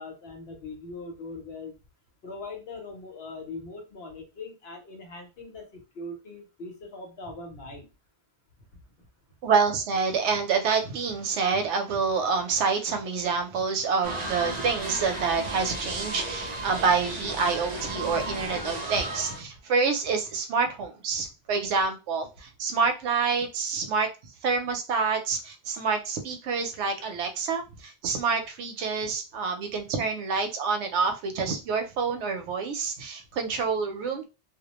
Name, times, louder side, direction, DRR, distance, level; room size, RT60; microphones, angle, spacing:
voice 1, 0.0-1.7 2.2-7.9 9.0-9.1, left 3 dB, 65° left, 2 dB, 1.0 m, -41 dB
voice 2, 9.4-34.3, right 5 dB, 85° right, 6 dB, 0.9 m, -27 dB
sound 1, 14.0-19.4, right 2 dB, 50° right, 0.5 m, -34 dB
2.4 x 2.1 x 2.9 m, 0.29 s
omnidirectional pair, 1.1 m